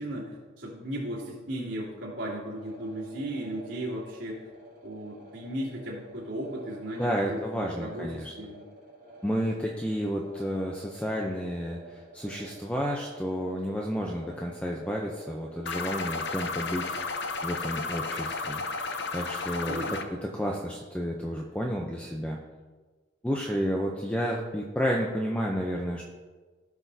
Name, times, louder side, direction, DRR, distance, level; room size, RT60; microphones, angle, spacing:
voice 1, 0.0-4.5 4.8-8.6 19.7-19.9, right 1 dB, 70° right, -10 dB, 2.6 m, -36 dB
sound 1, 2.5-19.1, right 1 dB, 40° right, 3.0 m, -49 dB
voice 2, 7.0-8.3 9.2-16.9 17.4-18.9 19.1-22.4 23.2-26.0, equal, 5° left, -1 dB, 0.5 m, -31 dB
sound 2, 15.7-20.1, left 4 dB, 60° left, 0.6 m, -33 dB
16.5 x 6.1 x 2.7 m, 1.3 s
head